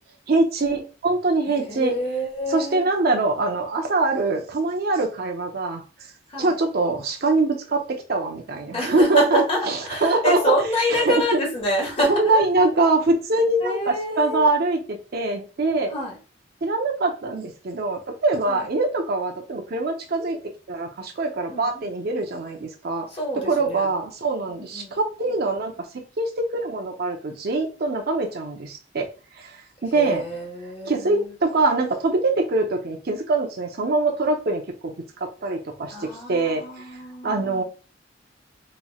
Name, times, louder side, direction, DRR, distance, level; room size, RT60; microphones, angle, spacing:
voice 1, 0.3-1.9 2.5-5.8 6.4-10.4 10.9-11.1 12.1-15.9 16.6-20.4 20.7-23.1 23.5-25.7 26.2-29.1 29.4-29.5 29.8-30.2 30.8-34.9 35.4-36.6 37.2-37.6, right 3 dB, 55° right, 3 dB, 0.7 m, -23 dB
voice 2, 1.5-2.9 6.3-6.6 8.7-12.5 13.6-14.5 15.9-16.2 18.5-18.7 21.5-21.9 23.1-24.0 24.5-25.0 29.9-31.3 35.9-37.6, left 1 dB, 35° left, -1 dB, 1.5 m, -27 dB
4.2 x 3.1 x 2.3 m, 0.36 s
head